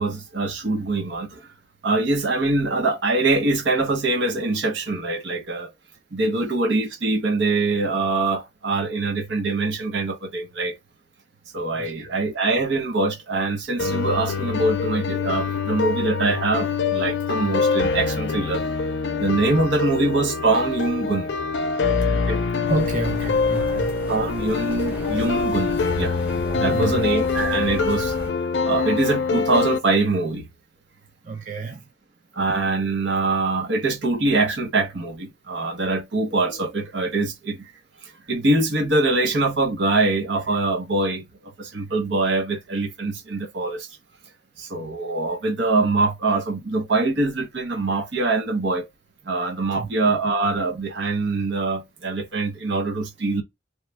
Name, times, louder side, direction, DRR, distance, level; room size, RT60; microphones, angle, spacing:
voice 1, 0.0-1.5 1.8-5.7 6.1-10.8 11.5-18.6 19.2-21.3 22.1-22.4 24.1-26.2 26.6-28.1 28.6-30.5 32.3-37.7 38.0-43.9 44.6-48.9 49.2-53.4, right 2 dB, 75° right, 0.9 m, -23 dB
voice 2, 11.8-12.1 22.6-23.9 26.5-27.0 31.2-31.8 49.8-49.9, right 3 dB, 45° right, 0.6 m, -29 dB
sound 1, 13.8-29.8, left 4 dB, 65° left, 0.5 m, -24 dB
sound 2, 22.6-28.3, left 1 dB, 5° right, 0.9 m, -36 dB
3.1 x 2.2 x 3.3 m
head